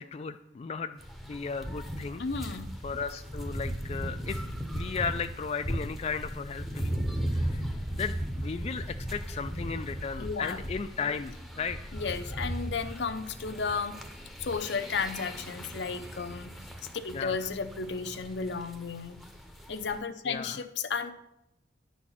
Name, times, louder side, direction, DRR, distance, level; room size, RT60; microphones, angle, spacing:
voice 1, 0.0-2.2 2.8-4.4 4.7-11.9 17.1-17.4 20.2-20.6, left 5 dB, 35° left, 8 dB, 0.3 m, -36 dB
sound 1, 1.0-20.0, equal, ahead, 0.8 m, -37 dB
voice 2, 2.2-2.7 10.2-10.6 11.9-14.0 14.4-16.5 17.0-19.2 19.7-21.1, left 5 dB, 70° left, 10 dB, 0.7 m, -33 dB
10.5 x 4.2 x 7.2 m, 0.84 s
head